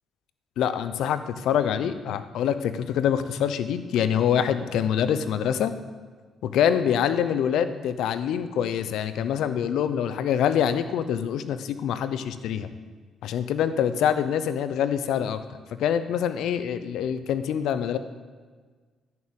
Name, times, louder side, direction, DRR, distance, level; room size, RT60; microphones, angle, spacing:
voice 1, 0.6-5.7 6.4-12.7 13.2-15.4 15.8-18.0, left 9 dB, 80° left, 12 dB, 0.7 m, -25 dB
11.0 x 6.6 x 8.7 m, 1.5 s
cardioid pair, 90°, 0 cm